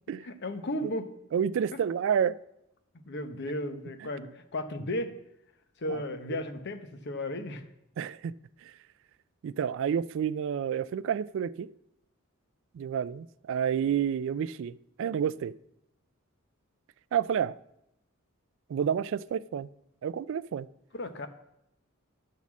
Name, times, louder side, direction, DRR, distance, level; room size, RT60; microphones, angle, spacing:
voice 1, 0.2-1.1 3.1-5.2 5.8-7.6 20.9-21.3, left 1 dB, 55° left, 9 dB, 0.9 m, -34 dB
voice 2, 1.3-2.4 5.9-6.0 8.0-8.3 8.6-8.7 9.4-11.7 12.7-15.5 17.1-17.6 18.7-19.7 20.0-20.7, right 8 dB, 65° right, 18 dB, 0.3 m, -29 dB
11.5 x 4.1 x 7.2 m, 0.82 s
head